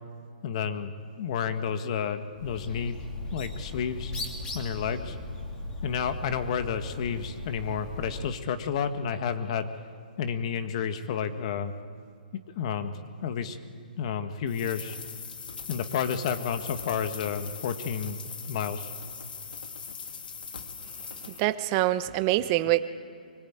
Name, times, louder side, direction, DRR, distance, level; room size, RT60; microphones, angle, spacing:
voice 1, 0.4-3.0 3.3-4.1 4.5-5.2 5.8-9.7 10.2-11.7 12.3-12.9 13.2-13.6 14.0-15.0 15.7-18.2 18.5-18.9, left 7 dB, 40° left, 9 dB, 1.5 m, -31 dB
Bird, 2.3-8.3, left 2 dB, 15° left, 2.8 m, -38 dB
sound 1, 14.5-21.4, left 5 dB, 75° left, 2.0 m, -41 dB
voice 2, 21.3-22.8, right 16 dB, 30° right, 13 dB, 0.9 m, -25 dB
24.0 x 21.0 x 8.9 m, 2.3 s
hypercardioid pair, 150°, 5 cm